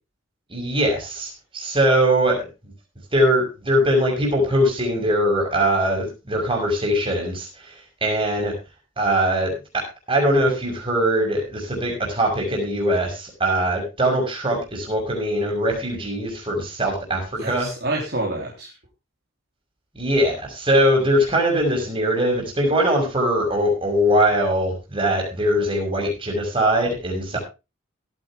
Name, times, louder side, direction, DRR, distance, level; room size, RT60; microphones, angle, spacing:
voice 1, 0.5-2.5 3.1-7.7 8.0-8.5 9.0-9.8 10.1-17.7 19.9-27.4, equal, 25° right, 0 dB, 5.9 m, -21 dB
voice 2, 17.4-18.7, right 2 dB, 50° right, -2 dB, 3.5 m, -27 dB
17.0 x 9.5 x 3.6 m, 0.28 s
head